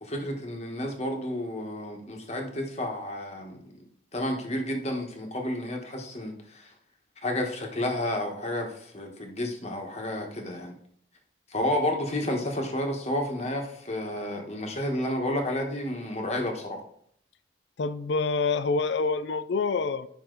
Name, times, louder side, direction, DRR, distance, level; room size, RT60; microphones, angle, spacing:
voice 1, 0.0-3.7 4.1-6.7 7.2-10.8 11.5-16.8, left 1 dB, 35° left, 1.4 m, -31 dB
voice 2, 17.8-20.1, left 4 dB, 75° left, 0.4 m, -26 dB
9.8 x 5.9 x 3.9 m
head